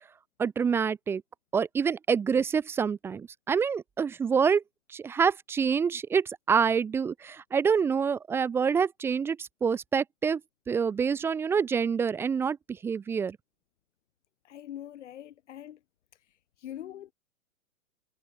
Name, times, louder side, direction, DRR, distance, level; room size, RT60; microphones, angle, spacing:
voice 1, 0.4-1.2 1.5-4.6 4.9-10.4 10.7-13.4, right 6 dB, 5° right, 0.4 m, -27 dB
voice 2, 14.4-15.8 16.6-17.1, left 11 dB, 60° left, 6.8 m, -42 dB
figure-of-eight pair, 110°, 41 cm